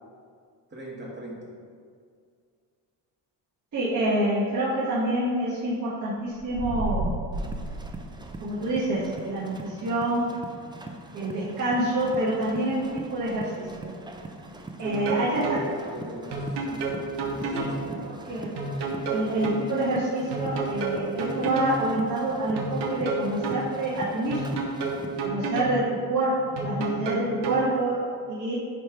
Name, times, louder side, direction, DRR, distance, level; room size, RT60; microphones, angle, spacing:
voice 1, 0.7-1.5 14.9-17.0 17.3-18.1, right 1 dB, 25° right, -4 dB, 1.9 m, -40 dB
voice 2, 3.7-7.2 8.4-10.3 11.1-13.9 14.8-15.6 17.5-17.7 18.1-18.5 19.1-24.4 25.2-28.6, right 1 dB, 45° right, -8 dB, 1.6 m, -27 dB
sound 1, 6.3-8.8, right 2 dB, 70° right, 1.3 m, -32 dB
sound 2, 7.3-25.3, right 2 dB, 10° right, 0.5 m, -42 dB
sound 3, 14.8-15.6 16.3-17.8 18.6-19.6 20.3-21.8 22.6-23.6 24.3-25.8 26.6-27.6, right 4 dB, 85° right, 1.3 m, -30 dB
10.0 x 3.4 x 4.5 m, 2.2 s
cardioid pair, 120°, 40 cm